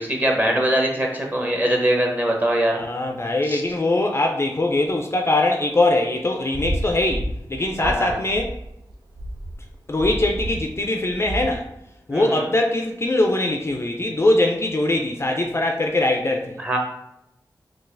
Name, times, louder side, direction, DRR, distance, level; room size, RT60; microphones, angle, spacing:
voice 1, 0.0-2.8 3.4-3.6 7.8-8.1 12.1-12.5 16.6-16.8, right 1 dB, 20° right, 0 dB, 0.8 m, -22 dB
voice 2, 2.8-8.6 9.9-11.7 12.1-16.6, left 2 dB, 30° left, 2 dB, 0.3 m, -22 dB
sound 1, 6.5-11.6, right 1 dB, 70° right, 0.4 m, -30 dB
3.9 x 2.4 x 2.5 m, 0.82 s
cardioid pair, 50°, 8 cm